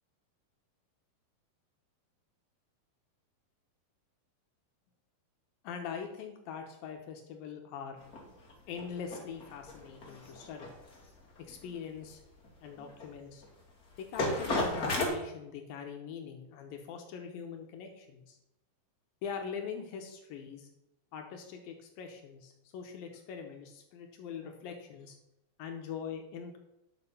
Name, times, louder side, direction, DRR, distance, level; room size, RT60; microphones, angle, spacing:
voice 1, 5.6-8.0 8.3-8.4 8.7-10.7 11.4-12.2 12.6-13.4 14.0-18.4 19.2-20.7 21.1-25.2 25.6-26.6, left 6 dB, 75° left, 3 dB, 2.7 m, -42 dB
sound 1, 8.0-15.1, left 2 dB, 30° left, 2.0 m, -35 dB
10.5 x 6.8 x 5.5 m, 0.90 s
omnidirectional pair, 4.2 m